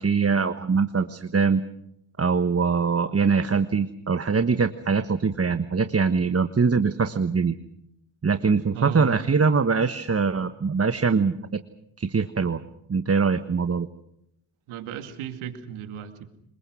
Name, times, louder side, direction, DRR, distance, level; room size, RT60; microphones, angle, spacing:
voice 1, 0.0-1.6 2.2-7.6 8.2-11.6 12.0-12.6 12.9-13.9, right 5 dB, 30° right, 10 dB, 1.3 m, -23 dB
voice 2, 8.7-9.1 14.7-16.3, right 8 dB, 85° right, 7 dB, 2.4 m, -35 dB
27.0 x 21.5 x 6.2 m, 0.78 s
supercardioid pair, 45°, 48 cm